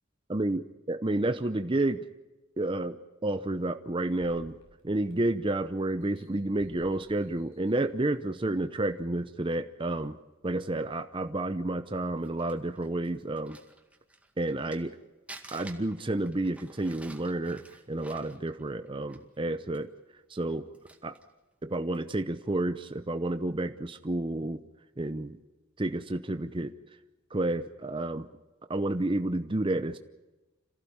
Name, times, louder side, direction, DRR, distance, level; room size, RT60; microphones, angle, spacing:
voice 1, 0.3-2.0 2.6-3.0 3.2-4.6 4.8-10.2 10.4-13.6 14.4-14.9 15.5-19.9 20.3-20.7 21.0-21.2 21.6-24.6 25.0-25.4 25.8-26.7 27.3-28.3 28.7-30.0, right 2 dB, 25° right, 9 dB, 0.7 m, -30 dB
sound 1, 4.2-5.5 6.0-8.1 8.7-8.8, left 1 dB, 85° left, 6.6 m, -57 dB
Crumpling crinkling, 12.0-14.9 15.3-19.4 19.7-19.8 20.4-21.3 21.9-22.1, right 2 dB, 5° right, 2.0 m, -51 dB
27.0 x 15.5 x 8.7 m, 1.1 s
head